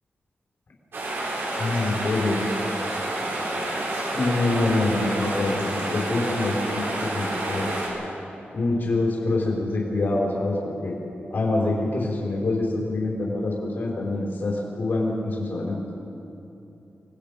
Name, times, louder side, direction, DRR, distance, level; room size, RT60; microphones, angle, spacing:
sound 1, 0.9-7.9, right 1 dB, 70° right, 6.5 m, -29 dB
voice 1, 1.6-2.5 4.1-7.7 8.5-10.9 11.3-15.8, left 2 dB, 55° left, -2 dB, 5.0 m, -25 dB
28.0 x 20.5 x 5.3 m, 2.9 s
wide cardioid pair, 170°, 4 cm